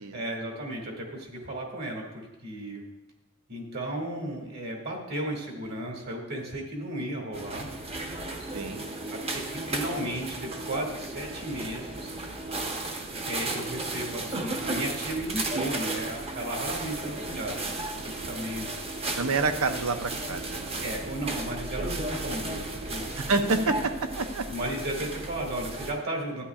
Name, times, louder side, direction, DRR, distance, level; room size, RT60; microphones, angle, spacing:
voice 1, 0.1-2.8 3.5-7.7 9.1-12.1 13.2-17.7 18.0-18.7 20.8-23.2 24.5-26.4, right 1 dB, 50° right, 0 dB, 2.1 m, -34 dB
sound 1, 7.3-25.9, right 2 dB, 25° right, 0.9 m, -34 dB
voice 2, 8.5-8.9 18.2-18.3 19.2-20.8 23.2-23.7 24.2-24.5, right 3 dB, 85° right, 8 dB, 0.8 m, -28 dB
13.0 x 9.6 x 2.4 m, 0.99 s
head